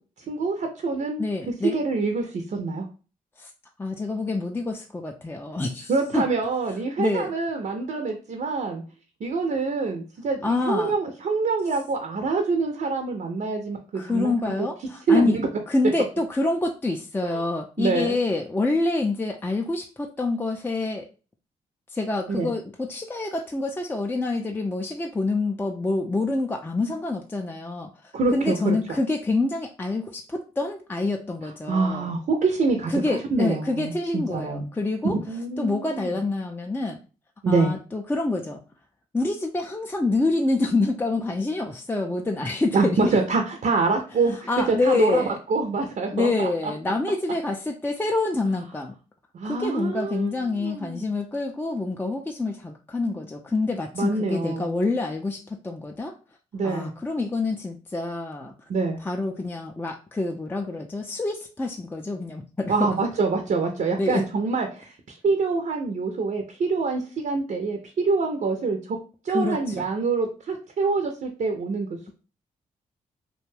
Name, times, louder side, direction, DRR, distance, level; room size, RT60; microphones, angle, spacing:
voice 1, 0.3-1.2 1.7-2.9 5.9-8.8 9.2-14.5 15.1-15.5 17.2-17.4 17.8-18.2 22.3-22.5 28.1-28.8 31.7-32.9 33.3-34.7 35.3-36.1 37.4-37.7 42.7-46.7 49.3-50.3 50.6-51.0 54.0-54.7 56.5-56.9 58.7-59.0 62.7-67.8 68.0-69.0 69.2-71.9, right 4 dB, 55° right, 4 dB, 0.5 m, -25 dB
voice 2, 1.2-1.8 3.4-3.5 3.8-6.3 7.0-7.3 10.4-11.0 13.9-15.4 15.7-21.1 21.9-32.1 32.9-35.2 35.6-37.0 37.5-38.6 39.1-43.2 44.5-45.4 46.1-48.9 49.4-56.2 56.6-58.5 59.0-62.9 64.0-64.2 69.3-69.9, left 2 dB, 15° left, 2 dB, 0.4 m, -27 dB
2.5 x 2.2 x 3.2 m, 0.35 s
supercardioid pair, 45°, 17 cm